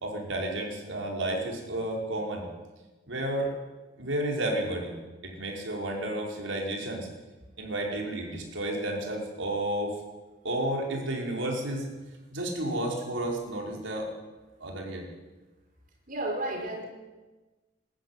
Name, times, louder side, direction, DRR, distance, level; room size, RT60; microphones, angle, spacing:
voice 1, 0.0-2.5 3.1-3.5 4.0-4.9 5.2-7.1 7.6-10.0 10.4-11.8 12.3-14.1 14.6-15.0, right 1 dB, 85° right, 0 dB, 4.9 m, -31 dB
voice 2, 16.1-16.9, right 1 dB, 45° right, 0 dB, 5.6 m, -32 dB
21.0 x 13.0 x 9.7 m, 1.2 s
head